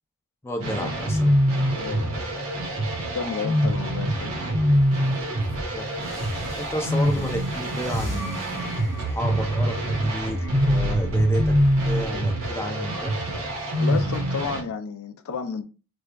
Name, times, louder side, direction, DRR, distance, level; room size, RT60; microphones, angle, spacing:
voice 1, 0.4-1.3 5.7-5.8 6.6-8.6 9.0-11.5 11.8-13.1, equal, 10° left, 0.4 m, -32 dB
sound 1, 0.6-14.6, equal, 80° right, 1.0 m, -24 dB
voice 2, 1.8-2.3 3.1-4.4 13.8-15.6, left 6 dB, 80° left, 0.4 m, -31 dB
sound 2, 4.7-9.3 10.1-13.4 14.1-14.2, equal, 55° left, 0.8 m, -39 dB
sound 3, 6.0-14.0, left 1 dB, 15° right, 1.0 m, -43 dB
5.1 x 2.2 x 2.2 m
head